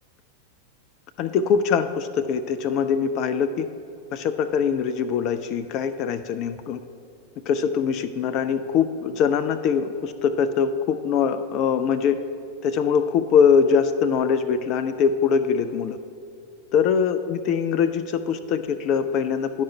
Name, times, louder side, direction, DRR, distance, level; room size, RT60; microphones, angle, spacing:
voice 1, 1.2-3.7 4.1-6.8 7.5-12.2 12.6-16.0 16.7-19.6, left 6 dB, 40° left, 9 dB, 0.3 m, -22 dB
10.5 x 5.0 x 4.4 m, 2.8 s
figure-of-eight pair, 90°, 0 cm